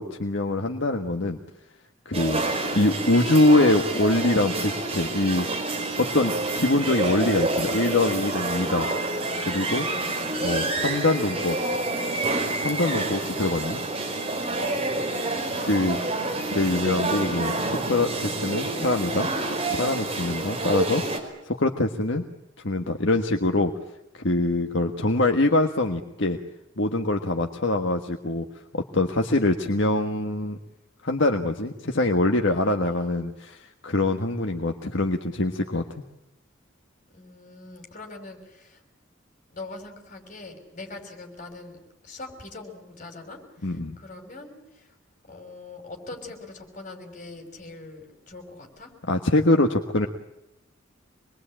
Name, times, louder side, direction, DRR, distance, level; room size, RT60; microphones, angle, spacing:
voice 1, 0.0-1.4 2.0-2.4 2.7-5.5 6.0-8.9 9.5-9.9 10.4-11.6 12.6-13.8 15.6-16.0 16.5-17.5 17.8-19.3 19.7-21.0 21.4-22.2 22.6-23.7 24.1-26.4 26.8-28.5 28.7-30.6 31.0-35.8 43.6-44.0 49.1-50.1, left 2 dB, 65° left, 4 dB, 1.5 m, -24 dB
sound 1, 2.1-21.2, right 2 dB, 30° right, 4.9 m, -28 dB
voice 2, 9.9-10.4 12.8-13.6 14.6-15.1 32.5-33.2 37.1-38.8 39.5-41.8 42.0-44.9 45.3-48.9, left 3 dB, 40° left, 4 dB, 6.0 m, -42 dB
26.5 x 21.5 x 8.9 m, 0.89 s
head